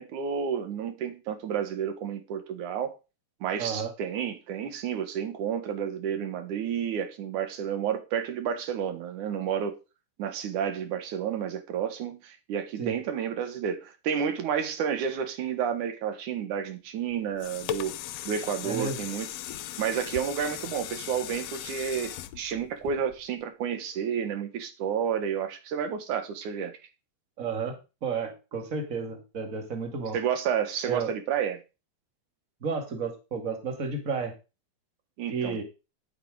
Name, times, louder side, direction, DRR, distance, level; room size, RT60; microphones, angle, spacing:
voice 1, 0.0-3.0 3.4-9.8 10.2-17.9 18.3-19.3 19.8-26.8 30.1-31.6 35.2-35.6, right 8 dB, 75° right, 3.1 m, -31 dB
voice 2, 3.6-3.9 12.8-12.9 18.6-19.0 27.4-30.2 30.9-31.1 32.6-34.3 35.3-35.6, right 5 dB, 30° right, 2.3 m, -32 dB
sound 1, 17.1-23.4 23.9-24.0, left 12 dB, 75° left, 1.6 m, -38 dB
10.0 x 8.2 x 5.0 m
omnidirectional pair, 3.6 m